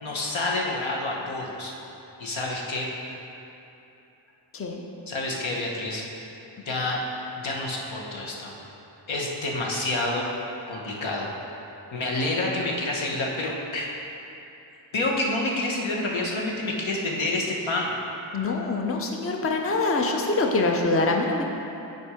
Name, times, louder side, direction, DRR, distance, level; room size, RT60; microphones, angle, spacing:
voice 1, 0.0-1.7 2.2-2.9 5.1-6.0 6.7-7.0 7.4-8.5 9.1-10.4 10.7-11.3 11.9-13.9 14.9-17.9, left 2 dB, 90° left, -2 dB, 1.2 m, -28 dB
voice 2, 18.3-21.4, left 3 dB, 30° left, 2 dB, 0.6 m, -24 dB
8.3 x 4.4 x 4.9 m, 2.9 s
wide cardioid pair, 100°, 45 cm